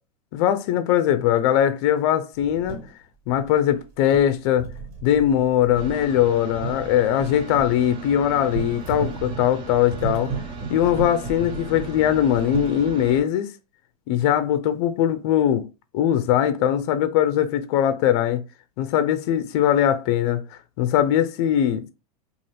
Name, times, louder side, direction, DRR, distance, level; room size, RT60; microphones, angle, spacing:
voice 1, 0.3-2.8 3.3-4.7 5.0-10.3 10.7-13.5 14.1-15.6 15.9-18.4 18.8-20.4 20.8-21.9, left 10 dB, 50° left, 0.4 m, -21 dB
sound 1, 2.3-2.9 3.3-3.8 4.1-7.8 8.5-12.7, right 5 dB, 65° right, 1.6 m, -34 dB
sound 2, 5.7-13.2, right 3 dB, 25° right, 0.4 m, -38 dB
2.6 x 2.4 x 3.2 m
supercardioid pair, 150°, 19 cm